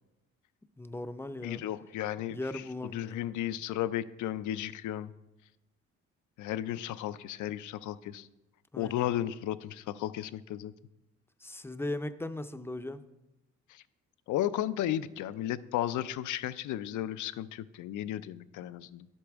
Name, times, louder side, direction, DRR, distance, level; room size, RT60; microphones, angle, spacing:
voice 1, 0.8-1.6 2.3-3.2 8.7-9.1 11.4-13.0, left 2 dB, 10° left, 10 dB, 0.5 m, -38 dB
voice 2, 1.4-5.1 6.4-8.3 8.7-10.7 13.7-13.8 14.3-19.1, left 12 dB, 80° left, 15 dB, 0.5 m, -34 dB
10.5 x 8.3 x 3.5 m, 0.96 s
cardioid pair, 90°, 30 cm